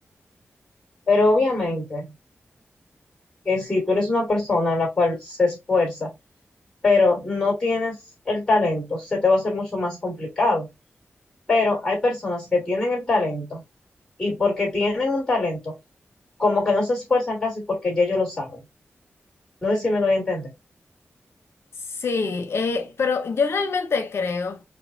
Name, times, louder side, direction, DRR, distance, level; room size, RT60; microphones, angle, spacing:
voice 1, 1.1-2.1 3.4-6.1 6.8-8.0 8.3-10.7 11.5-13.6 14.2-15.7 16.4-18.6 19.6-20.5, left 3 dB, 15° left, 2.5 m, -22 dB
voice 2, 21.9-24.6, left 4 dB, 70° left, 0.7 m, -25 dB
4.6 x 2.5 x 2.6 m
wide cardioid pair, 150°, 4 cm